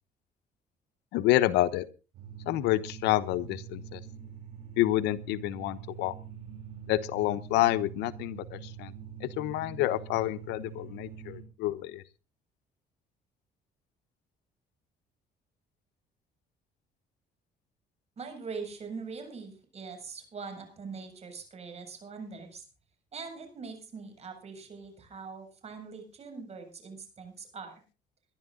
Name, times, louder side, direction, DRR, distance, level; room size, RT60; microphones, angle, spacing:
voice 1, 1.1-1.9 2.5-4.0 4.8-6.1 6.9-8.9 9.2-12.0, left 15 dB, 90° left, 13 dB, 1.1 m, -28 dB
sound 1, 2.1-11.4, right 8 dB, 80° right, 4.3 m, -45 dB
voice 2, 18.2-22.6 23.1-27.7, right 5 dB, 40° right, 5 dB, 7.5 m, -42 dB
21.5 x 11.5 x 3.8 m, 0.34 s
cardioid pair, 110°, 17 cm